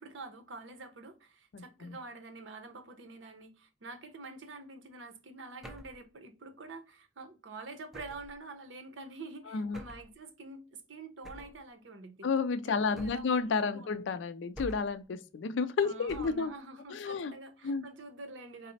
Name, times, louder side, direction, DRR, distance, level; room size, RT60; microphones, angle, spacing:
voice 1, 0.0-12.3 12.7-14.0 15.8-18.7, right 3 dB, 85° right, 0.7 m, -47 dB
voice 2, 1.5-2.0 9.5-9.8 12.2-16.5 16.9-17.3 17.6-17.8, left 5 dB, 75° left, 0.4 m, -31 dB
sound 1, 5.6-6.0 7.9-8.4 9.7-10.1 11.2-11.6 13.0-13.4 14.6-15.0 16.1-16.5, equal, ahead, 0.4 m, -46 dB
4.1 x 2.0 x 4.0 m
head